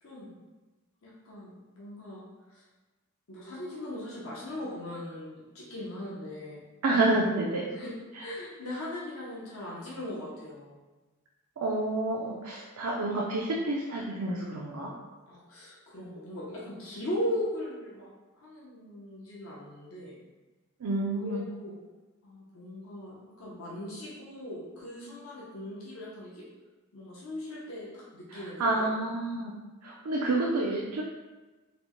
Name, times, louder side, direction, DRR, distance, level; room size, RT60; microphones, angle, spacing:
voice 1, 0.0-0.3 1.0-2.2 2.5-2.6 3.3-6.6 7.7-7.9 8.2-10.8 15.3-18.1 18.4-20.1 21.2-21.7 22.2-26.4 26.9-28.9, left 1 dB, 75° left, -6 dB, 0.7 m, -39 dB
voice 2, 6.8-7.7 11.6-14.9 20.8-21.4 28.6-29.5 29.8-31.0, right 2 dB, 85° right, -3 dB, 0.4 m, -29 dB
4.1 x 2.1 x 3.0 m, 1.2 s
head